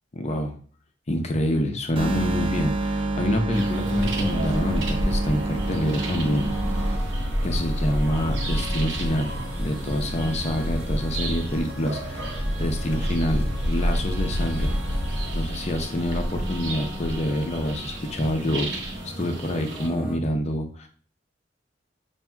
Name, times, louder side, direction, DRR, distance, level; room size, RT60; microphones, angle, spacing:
voice 1, 0.1-0.6 1.1-6.5 6.7-7.0 7.4-14.8 15.3-20.9, equal, 40° left, 4 dB, 0.6 m, -27 dB
sound 1, 2.0-7.0, right 2 dB, 30° right, 0.4 m, -28 dB
sound 2, 3.5-19.9, equal, 80° right, 1.1 m, -29 dB
sound 3, 3.6-20.2, equal, 10° right, 0.9 m, -39 dB
5.7 x 2.6 x 2.3 m, 0.44 s
head